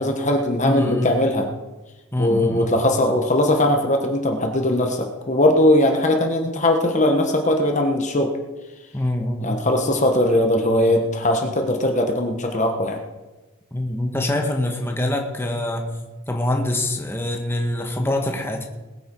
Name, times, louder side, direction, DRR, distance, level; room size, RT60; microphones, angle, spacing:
voice 1, 0.0-1.5 2.2-8.3 9.4-13.0, left 1 dB, 35° left, 4 dB, 1.3 m, -20 dB
voice 2, 0.6-1.1 2.1-2.7 8.9-9.6 13.7-15.9 16.3-18.7, left 1 dB, 10° left, 2 dB, 1.4 m, -24 dB
20.5 x 9.4 x 4.6 m, 1.1 s
head